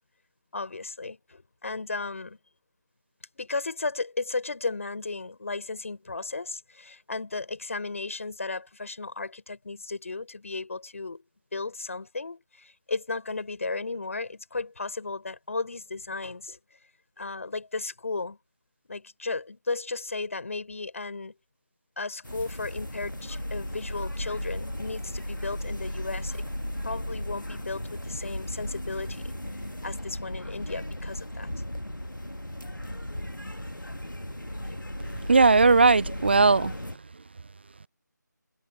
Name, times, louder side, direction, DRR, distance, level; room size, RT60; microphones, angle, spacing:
voice 1, 0.5-2.4 3.3-11.2 11.5-16.6 17.2-18.4 18.9-21.3 22.0-26.5 26.8-29.3 29.8-31.5, left 3 dB, 45° left, 6.6 m, -34 dB
sound 1, 22.2-37.0, left 1 dB, 90° left, 2.1 m, -35 dB
voice 2, 35.3-36.7, right 4 dB, 35° right, 0.8 m, -18 dB
figure-of-eight pair, 160°, 10 cm